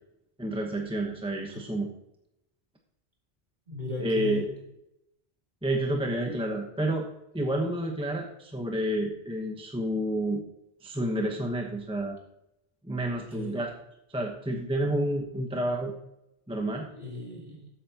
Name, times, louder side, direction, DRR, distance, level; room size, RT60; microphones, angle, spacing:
voice 1, 0.4-1.9 4.0-4.4 5.6-7.1 7.3-10.4 10.8-12.2 12.8-13.7 14.1-15.9 16.5-16.9, right 1 dB, 5° right, 1 dB, 1.0 m, -29 dB
voice 2, 3.7-4.5 6.2-6.4 13.0-13.6 16.9-17.7, left 2 dB, 45° right, -3 dB, 3.5 m, -37 dB
13.5 x 8.3 x 2.9 m, 0.84 s
omnidirectional pair, 1.1 m